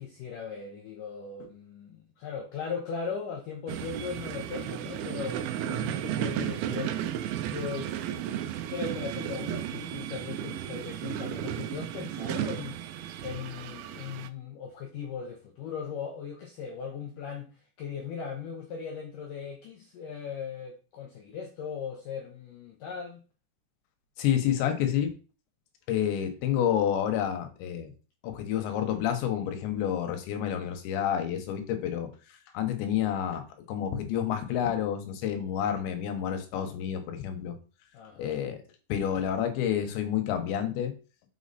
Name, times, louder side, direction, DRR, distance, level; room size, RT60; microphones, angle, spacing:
voice 1, 0.0-7.0 7.5-8.1 8.7-12.8 13.2-17.5 17.8-23.2 37.9-38.4, left 6 dB, 70° left, 2.0 m, -38 dB
sound 1, 3.7-14.3, right 10 dB, 85° right, 2.2 m, -34 dB
voice 2, 24.2-25.1 25.9-27.9 28.2-32.1 32.5-37.6 38.2-38.6 38.9-40.9, left 9 dB, 85° left, 3.4 m, -29 dB
6.3 x 5.8 x 4.1 m
omnidirectional pair, 5.0 m